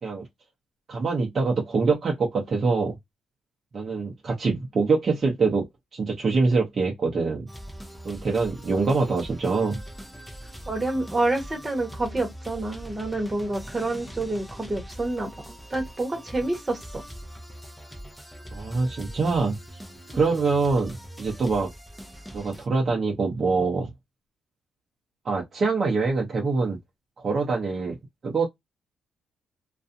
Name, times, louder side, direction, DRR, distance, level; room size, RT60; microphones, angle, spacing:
voice 1, 0.9-3.0 3.7-5.7 5.9-7.5 8.0-9.8 18.5-19.6 20.1-21.7 22.3-23.9 25.2-26.8 27.2-28.0 28.2-28.5, right 4 dB, 40° right, 0.7 m, -24 dB
sound 1, 7.5-22.7, equal, ahead, 0.6 m, -42 dB
voice 2, 10.7-15.3 15.7-17.0 20.1-20.2, right 2 dB, 25° right, 1.0 m, -28 dB
2.5 x 2.3 x 2.6 m
cardioid pair, 90°, 0 cm